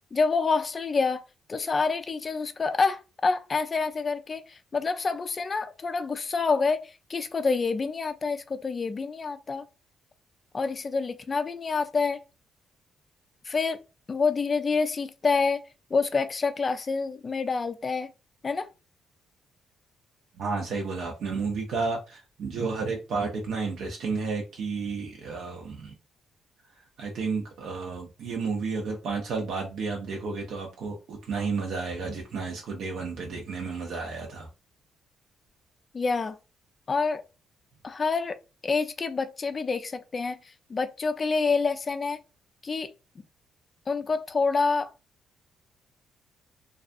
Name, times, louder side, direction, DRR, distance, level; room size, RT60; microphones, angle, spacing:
voice 1, 0.1-1.2 1.5-9.6 10.5-12.2 13.5-13.8 14.1-15.6 15.9-18.1 18.4-18.7 35.9-36.4 36.9-37.2 37.8-38.4 38.6-40.4 40.7-42.2 42.6-42.9 43.9-44.9, left 4 dB, 35° left, 0.3 m, -27 dB
voice 2, 20.4-25.9 27.0-34.5, right 4 dB, 70° right, 0.5 m, -32 dB
2.4 x 2.3 x 2.5 m
cardioid pair, 90°, 0 cm